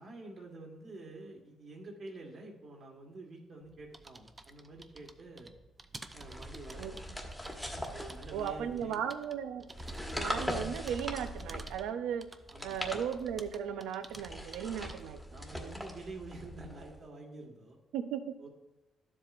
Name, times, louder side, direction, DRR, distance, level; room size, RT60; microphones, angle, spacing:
voice 1, 0.0-5.5 6.1-7.0 7.9-9.0 12.5-12.8 15.3-17.8 18.4-18.5, right 2 dB, 50° right, 1 dB, 1.6 m, -48 dB
sound 1, 3.6-15.2, right 2 dB, 25° right, 0.5 m, -53 dB
sound 2, 6.1-8.8 9.7-11.9 12.4-13.6 14.1-17.0, equal, 5° left, 1.2 m, -41 dB
voice 2, 8.3-9.7 10.1-12.3 12.6-15.2 15.5-15.8 17.9-18.3, right 8 dB, 90° right, 10 dB, 0.5 m, -36 dB
12.0 x 7.4 x 2.5 m, 1.0 s
cardioid pair, 90°, 0 cm